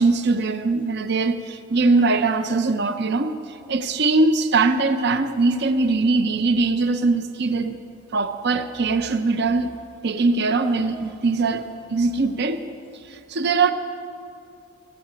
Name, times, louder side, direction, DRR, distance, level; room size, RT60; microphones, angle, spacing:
voice 1, 0.0-7.8 8.1-9.7 10.0-11.6 11.9-12.6 13.1-13.7, right 3 dB, 50° right, 9 dB, 0.6 m, -21 dB
16.5 x 9.0 x 5.1 m, 2.6 s
head